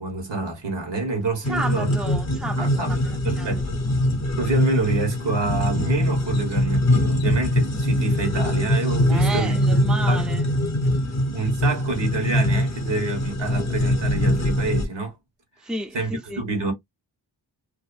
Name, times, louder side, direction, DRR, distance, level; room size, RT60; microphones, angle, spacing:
voice 1, 0.0-1.9 2.6-3.7 4.4-9.8 10.1-10.2 11.3-15.1 15.9-16.7, right 3 dB, 70° right, 1.3 m, -27 dB
sound 1, 1.4-14.8, left 1 dB, 40° left, 0.8 m, -22 dB
voice 2, 1.5-3.6 9.1-10.5 10.8-10.9 15.6-16.4, right 2 dB, ahead, 0.5 m, -32 dB
2.6 x 2.5 x 2.4 m
wide cardioid pair, 75°, 43 cm